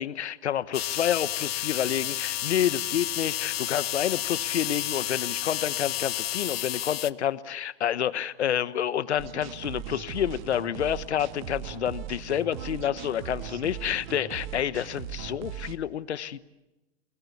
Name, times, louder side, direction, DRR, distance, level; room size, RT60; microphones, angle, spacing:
voice 1, 0.0-16.4, left 10 dB, 80° left, 15 dB, 1.2 m, -29 dB
sound 1, 0.7-7.1, left 13 dB, 65° left, 0.9 m, -31 dB
sound 2, 9.2-15.8, right 10 dB, 45° right, 1.5 m, -39 dB
29.0 x 20.5 x 8.5 m, 1.0 s
hypercardioid pair, 140°, 33 cm